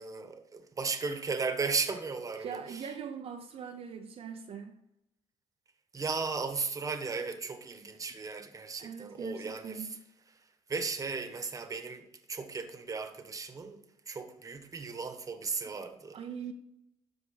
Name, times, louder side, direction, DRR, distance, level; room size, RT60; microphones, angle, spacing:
voice 1, 0.0-2.9 5.9-10.0 10.7-13.8 14.1-16.2, right 4 dB, 25° right, 1.3 m, -36 dB
voice 2, 2.4-4.7 8.8-10.0 15.7-15.8 16.1-16.5, right 7 dB, 55° right, 0.7 m, -41 dB
12.5 x 4.8 x 4.9 m
cardioid pair, 115°, 13 cm